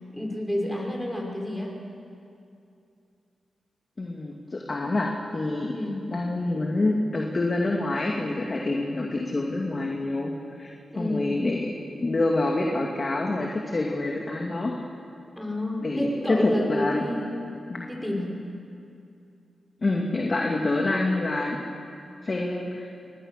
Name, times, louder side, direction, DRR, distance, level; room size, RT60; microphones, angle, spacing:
voice 1, 0.1-1.8 5.7-6.0 10.9-11.4 15.3-17.5 17.9-18.3, left 1 dB, 5° left, -1 dB, 6.3 m, -30 dB
voice 2, 4.0-5.8 6.1-11.7 12.0-14.7 15.8-17.0 17.7-17.9 19.8-21.6 22.2-22.9, left 2 dB, 40° left, 0 dB, 2.5 m, -27 dB
25.0 x 20.0 x 6.8 m, 2.6 s
cardioid pair, 55°, 0 cm